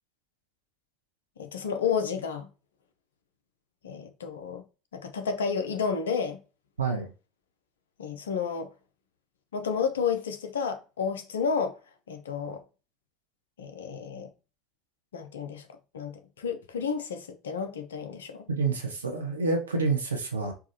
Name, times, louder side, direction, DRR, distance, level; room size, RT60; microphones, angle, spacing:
voice 1, 1.4-2.5 3.8-4.6 4.9-6.4 8.0-8.7 9.5-11.8 12.1-12.6 13.6-14.3 15.1-15.6 15.9-18.4, left 6 dB, 75° left, 0.5 m, -31 dB
voice 2, 6.8-7.1 18.5-20.5, right 4 dB, 80° right, 0.7 m, -28 dB
4.6 x 2.3 x 2.8 m
figure-of-eight pair, 65°, 0 cm